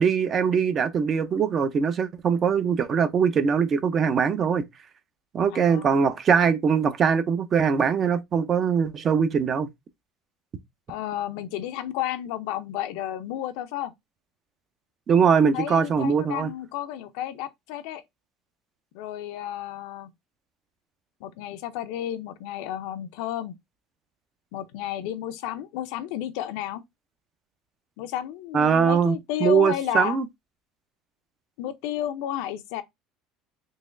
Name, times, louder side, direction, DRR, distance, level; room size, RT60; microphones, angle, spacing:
voice 1, 0.0-4.6 5.3-9.7 15.1-16.5 28.5-29.2 29.4-30.3, right 6 dB, 35° right, 0.5 m, -22 dB
voice 2, 5.5-6.0 10.9-13.9 15.5-18.0 18.9-20.1 21.2-23.5 24.5-26.8 28.0-30.2 31.6-32.8, left 12 dB, 75° left, 0.5 m, -32 dB
3.9 x 3.0 x 2.5 m
cardioid pair, 140°, 0 cm